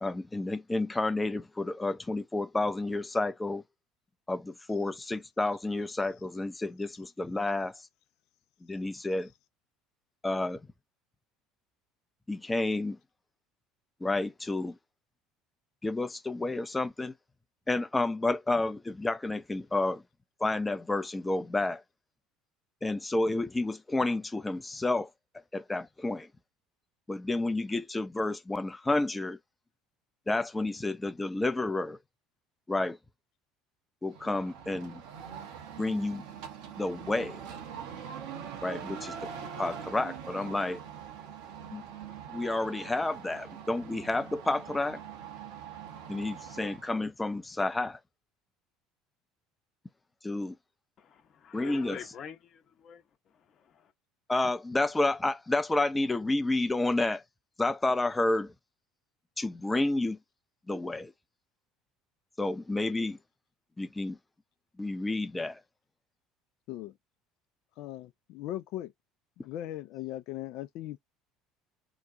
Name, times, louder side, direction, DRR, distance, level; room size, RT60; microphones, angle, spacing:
voice 1, 0.0-3.6 4.3-7.7 8.6-9.3 10.2-10.6 12.3-13.0 14.0-14.8 15.8-17.1 17.7-20.0 20.4-21.8 22.8-25.1 25.5-26.3 27.1-29.4 30.3-32.0 32.7-33.0 34.0-35.0 35.8-36.2 36.8-37.4 38.6-39.1 39.6-40.8 41.7-41.8 42.3-45.0 46.1-48.0 50.2-50.5 51.5-52.0 54.3-57.2 57.6-58.5 59.4-60.2 60.7-61.1 62.4-63.2 63.8-64.2 64.8-65.6, left 2 dB, 15° left, 0.6 m, -30 dB
sound 1, 34.1-46.9, right 8 dB, 70° right, 1.0 m, -43 dB
voice 2, 51.0-53.9, left 8 dB, 45° left, 1.0 m, -47 dB
voice 3, 67.8-68.9 69.4-71.0, left 13 dB, 60° left, 0.5 m, -38 dB
3.0 x 2.3 x 3.8 m
hypercardioid pair, 70°, 0 cm